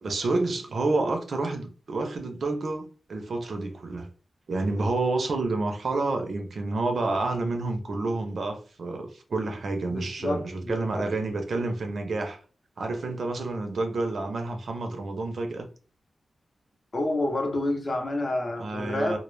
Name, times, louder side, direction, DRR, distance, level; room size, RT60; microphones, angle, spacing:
voice 1, 0.0-4.1 4.5-12.4 12.8-15.7 18.6-19.2, right 2 dB, 60° right, 0.4 m, -29 dB
voice 2, 9.9-11.1 16.9-19.2, left 2 dB, 35° left, 0.5 m, -29 dB
2.0 x 2.0 x 3.0 m
wide cardioid pair, 145°, 0 cm